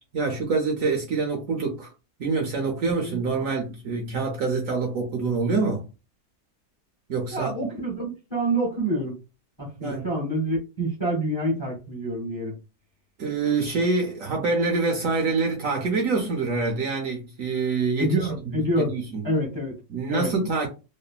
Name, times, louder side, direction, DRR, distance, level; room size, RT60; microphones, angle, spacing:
voice 1, 0.1-1.9 2.2-5.9 7.1-7.5 9.8-10.1 13.2-18.1 18.5-19.3 19.9-20.7, right 4 dB, 65° right, 0.9 m, -26 dB
voice 2, 7.3-9.2 9.6-12.5 18.0-18.9 19.2-19.8 20.1-20.3, right 1 dB, 25° left, 0.7 m, -27 dB
3.2 x 2.1 x 2.2 m
omnidirectional pair, 1.8 m